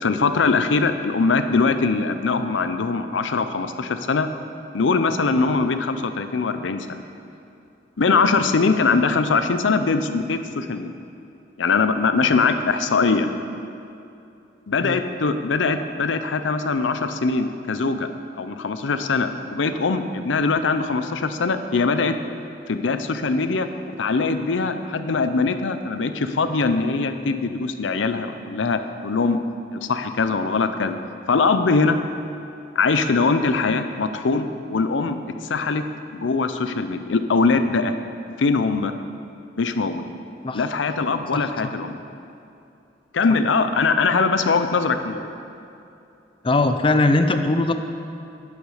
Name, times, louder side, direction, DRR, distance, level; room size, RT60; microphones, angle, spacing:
voice 1, 0.0-4.3 4.7-7.0 8.0-10.9 11.6-13.3 14.7-18.1 18.4-22.1 22.7-23.7 24.0-29.4 29.7-31.0 31.3-32.0 32.8-35.2 35.4-35.8 36.1-37.9 38.4-38.9 39.6-40.2 40.5-41.9 43.1-45.3, left 4 dB, 85° left, 9 dB, 0.6 m, -22 dB
voice 2, 41.3-41.7 46.4-47.7, left 2 dB, 30° left, 8 dB, 0.5 m, -20 dB
10.0 x 8.4 x 4.9 m, 2.7 s
head